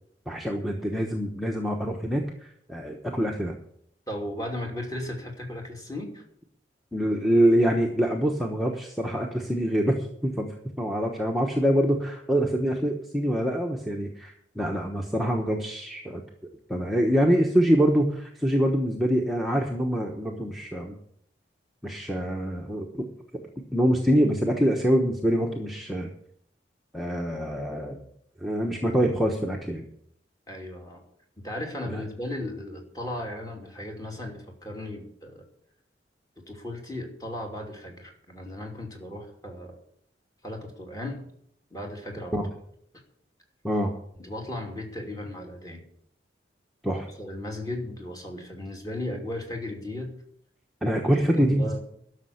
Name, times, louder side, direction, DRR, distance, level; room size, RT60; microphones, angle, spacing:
voice 1, 0.3-3.5 6.9-10.5 10.8-16.2 16.7-21.0 21.8-23.1 23.3-23.4 23.7-26.1 26.9-28.0 28.4-29.9 31.8-32.0 42.3-42.5 43.6-43.9 46.8-47.1 50.8-51.8, equal, ahead, 0 dB, 1.1 m, -25 dB
voice 2, 4.1-6.2 22.1-22.3 30.5-31.0 31.4-35.4 36.4-39.8 40.4-41.2 41.7-42.4 44.2-45.8 46.9-50.1 51.4-51.8, left 1 dB, 20° left, 1 dB, 2.6 m, -36 dB
12.0 x 6.5 x 9.7 m, 0.68 s
head